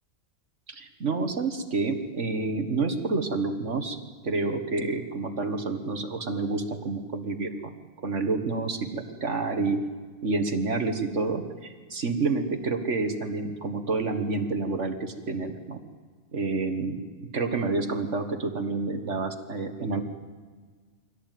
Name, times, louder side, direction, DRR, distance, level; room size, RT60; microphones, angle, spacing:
voice 1, 0.7-4.0 4.2-7.7 8.0-9.8 10.2-15.8 16.3-17.0 17.3-20.0, right 3 dB, 60° right, 7 dB, 1.9 m, -29 dB
23.5 x 17.0 x 9.3 m, 1.5 s
omnidirectional pair, 1.4 m